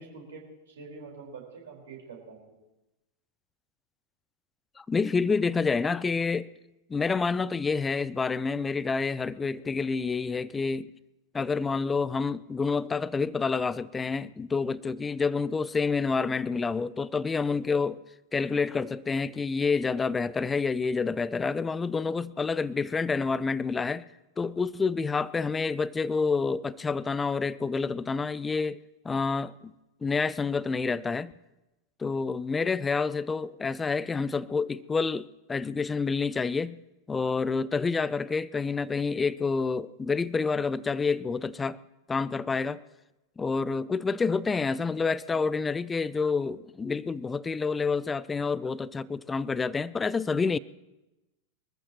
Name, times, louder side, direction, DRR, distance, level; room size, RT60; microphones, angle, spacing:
voice 1, 0.0-2.6, right 4 dB, 65° right, 4.7 m, -45 dB
voice 2, 4.8-6.5 6.9-10.9 11.3-18.0 18.3-24.1 24.4-28.8 29.0-29.7 30.0-31.3 32.0-36.8 37.1-41.8 42.1-42.8 43.4-50.6, left 4 dB, 15° left, 0.4 m, -28 dB
23.5 x 14.0 x 3.1 m
figure-of-eight pair, 90°, 0 cm